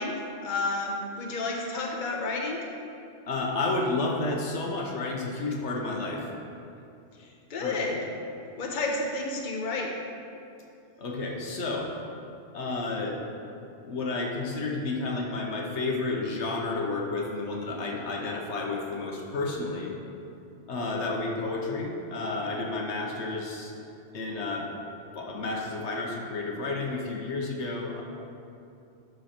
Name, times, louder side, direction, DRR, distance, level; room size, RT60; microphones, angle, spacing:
voice 1, 0.0-2.6 7.2-8.1 8.6-9.9, left 3 dB, 45° left, 0 dB, 1.0 m, -31 dB
voice 2, 3.3-6.2 7.6-7.8 11.0-11.9 12.5-13.2 13.8-19.9 20.7-23.8 24.1-24.7 25.1-28.0, left 3 dB, 75° left, -1 dB, 1.2 m, -31 dB
12.0 x 4.7 x 4.3 m, 2.7 s
omnidirectional pair, 1.2 m